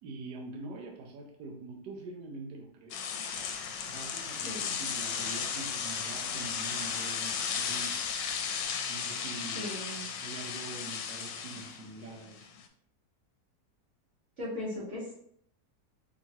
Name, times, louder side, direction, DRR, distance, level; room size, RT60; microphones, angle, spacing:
voice 1, 0.0-3.1 3.8-8.2 8.9-9.7 10.2-12.5, right 3 dB, 75° right, 0 dB, 1.3 m, -45 dB
sound 1, 2.9-12.7, left 7 dB, 85° left, 1.2 m, -35 dB
sound 2, 3.3-8.6, left 5 dB, 65° left, 1.0 m, -49 dB
voice 2, 9.5-10.1 14.4-15.1, left 1 dB, 45° right, -9 dB, 1.5 m, -38 dB
4.6 x 3.0 x 2.7 m, 0.68 s
omnidirectional pair, 1.9 m